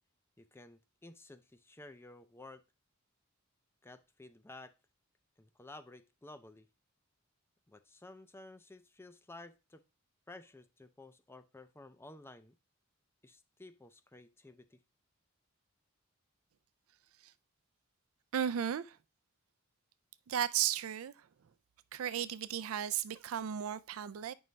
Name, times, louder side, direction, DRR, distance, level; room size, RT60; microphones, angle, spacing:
voice 1, 0.4-2.6 3.8-4.7 5.4-6.7 7.7-9.8 10.3-12.5 13.2-14.8, left 2 dB, 10° left, 0.4 m, -53 dB
voice 2, 18.3-19.0 20.3-21.1 21.9-24.3, right 9 dB, 85° right, 0.4 m, -34 dB
9.2 x 5.4 x 3.2 m
head